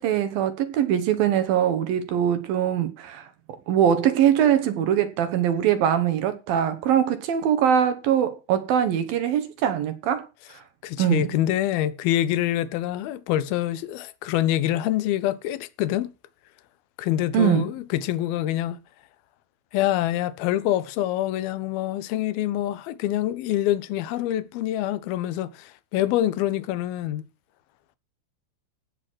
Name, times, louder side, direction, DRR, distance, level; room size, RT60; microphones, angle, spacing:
voice 1, 0.0-3.3 3.7-10.3 11.0-11.3 17.3-17.7, right 9 dB, 70° right, 2.4 m, -22 dB
voice 2, 10.8-16.1 17.0-18.8 19.7-27.2, left 13 dB, 75° left, 2.4 m, -25 dB
17.0 x 6.3 x 6.2 m
omnidirectional pair, 5.3 m